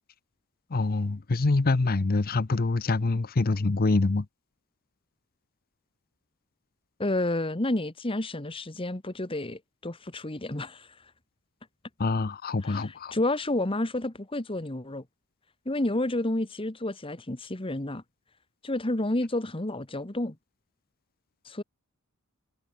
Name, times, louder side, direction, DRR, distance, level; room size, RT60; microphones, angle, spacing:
voice 1, 0.7-4.3 12.0-13.1, left 3 dB, 45° left, 0.7 m, -25 dB
voice 2, 7.0-10.9 12.6-15.0 15.6-18.0 18.6-20.3 21.4-21.6, left 1 dB, 25° left, 1.4 m, -30 dB
head